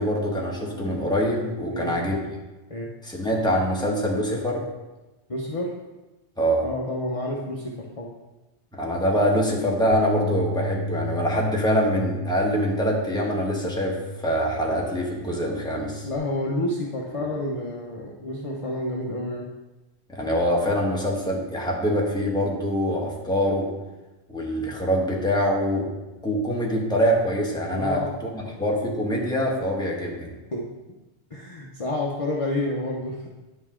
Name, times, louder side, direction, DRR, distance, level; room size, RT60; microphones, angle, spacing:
voice 1, 0.0-2.2 3.0-4.6 6.4-6.7 8.7-16.1 17.1-17.2 20.1-23.7 24.3-26.0 26.2-28.0 28.6-30.3, equal, 5° left, -2 dB, 1.2 m, -24 dB
voice 2, 1.7-2.0 2.7-2.9 5.3-5.7 6.6-8.1 16.0-19.5 27.7-28.5 30.5-30.6 31.3-33.3, left 1 dB, 35° left, -3 dB, 0.8 m, -29 dB
sound 1, 9.9-16.2, left 1 dB, 80° left, 1.0 m, -33 dB
9.3 x 5.4 x 3.7 m, 1.1 s
omnidirectional pair, 1.1 m